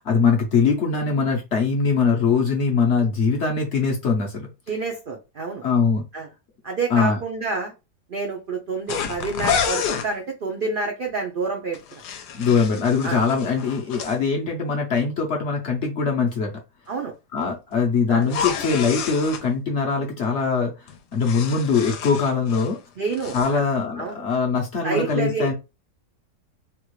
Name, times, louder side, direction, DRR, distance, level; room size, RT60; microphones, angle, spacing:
voice 1, 0.0-4.5 5.6-6.0 6.9-7.2 12.3-16.5 17.3-22.8 23.3-25.5, left 5 dB, 60° left, 1 dB, 0.8 m, -22 dB
voice 2, 4.7-5.6 6.1-6.3 6.6-7.7 8.1-12.0 13.0-13.2 16.9-17.1 18.1-18.3 23.0-23.6 24.0-24.2 24.8-25.5, right 4 dB, 75° right, 1 dB, 0.5 m, -28 dB
sound 1, 8.9-10.1 11.7-14.1 18.2-19.4 20.9-22.8 23.1-23.5, left 7 dB, 80° left, 1.2 m, -29 dB
3.5 x 2.3 x 3.0 m, 0.27 s
omnidirectional pair, 1.7 m